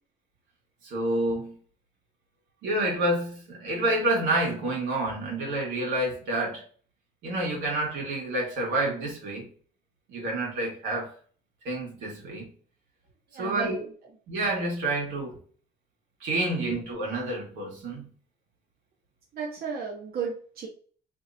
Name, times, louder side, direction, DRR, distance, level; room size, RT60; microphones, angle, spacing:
voice 1, 0.8-1.6 2.6-6.6 7.2-9.5 10.1-11.1 11.6-12.5 13.4-13.7 14.3-15.4 16.2-18.1, right 2 dB, 90° right, 1.4 m, -28 dB
voice 2, 13.3-13.9 19.3-20.7, right 5 dB, 55° right, 0.8 m, -34 dB
2.9 x 2.9 x 2.5 m
cardioid pair, 85°, 19 cm